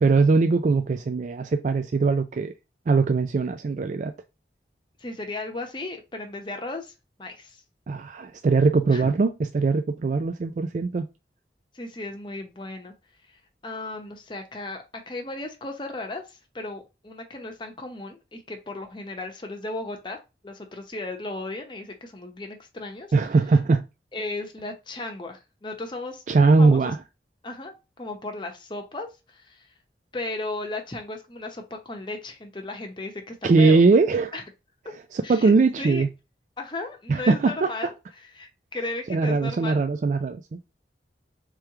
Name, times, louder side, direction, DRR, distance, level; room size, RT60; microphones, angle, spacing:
voice 1, 0.0-2.5 2.9-4.1 7.9-11.1 23.1-23.9 26.3-27.0 33.4-34.3 35.1-36.1 37.1-37.7 39.1-40.6, right 4 dB, 45° right, 0.3 m, -21 dB
voice 2, 5.0-6.9 7.2-7.6 8.9-9.1 11.7-12.9 13.3-23.1 24.1-26.2 26.6-26.9 27.4-29.7 30.1-33.8 34.3-34.4 35.2-36.0 36.6-37.9 38.3-39.8, left 2 dB, 25° left, 0.8 m, -35 dB
3.3 x 3.1 x 4.7 m
head